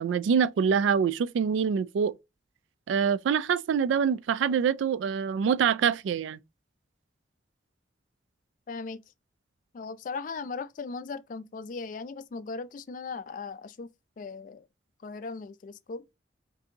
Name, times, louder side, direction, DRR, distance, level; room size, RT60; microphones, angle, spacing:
voice 1, 0.0-2.2 2.9-6.4, right 7 dB, 85° right, 0.3 m, -25 dB
voice 2, 8.7-9.0 9.7-13.9 14.2-14.7 15.0-16.0, left 4 dB, 45° left, 0.3 m, -38 dB
5.1 x 2.6 x 2.7 m
head